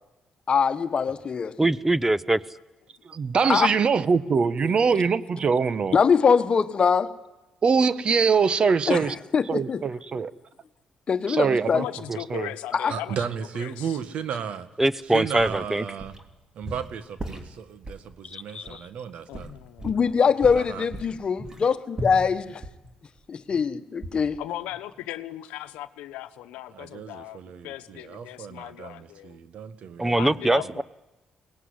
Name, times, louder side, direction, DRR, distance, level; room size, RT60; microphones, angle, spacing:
voice 1, 0.5-1.5 3.5-3.7 5.9-7.1 8.9-9.1 9.3-9.8 11.1-11.8 12.7-13.0 18.2-18.8 19.8-22.6 23.3-24.4, left 6 dB, 50° left, 1.3 m, -23 dB
voice 2, 1.6-2.4 14.8-15.8 30.0-30.8, right 1 dB, 15° right, 0.8 m, -22 dB
voice 3, 3.0-6.0 7.6-9.1 9.5-10.3 11.3-12.5, right 5 dB, 50° right, 1.0 m, -23 dB
voice 4, 11.7-13.2 13.5-14.0 18.6-18.8 19.3-20.2 24.4-29.4 30.2-30.8, left 14 dB, 90° left, 1.0 m, -38 dB
voice 5, 12.9-14.7 15.1-16.2 16.5-19.5 20.5-20.9 26.7-30.7, right 7 dB, 70° right, 1.6 m, -35 dB
sound 1, 15.1-16.3 16.6-18.1 18.7-18.8 19.3-20.1 20.4-23.7 24.0-24.5 24.7-24.8, right 1 dB, 30° right, 3.3 m, -38 dB
23.0 x 18.5 x 9.7 m
supercardioid pair, 65°, 2 cm